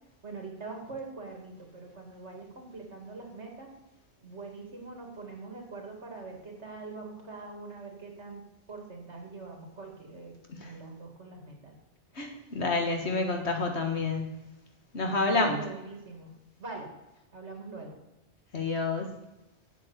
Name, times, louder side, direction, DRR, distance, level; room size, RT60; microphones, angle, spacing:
voice 1, 0.2-3.7 4.2-8.4 8.7-11.7 15.2-16.3 16.6-16.9 17.3-18.0, right 3 dB, 80° right, 2 dB, 2.7 m, -43 dB
voice 2, 12.2-14.3 14.9-15.6 18.5-19.1, left 3 dB, 75° left, 3 dB, 1.9 m, -28 dB
8.1 x 7.6 x 8.0 m, 0.99 s
omnidirectional pair, 1.1 m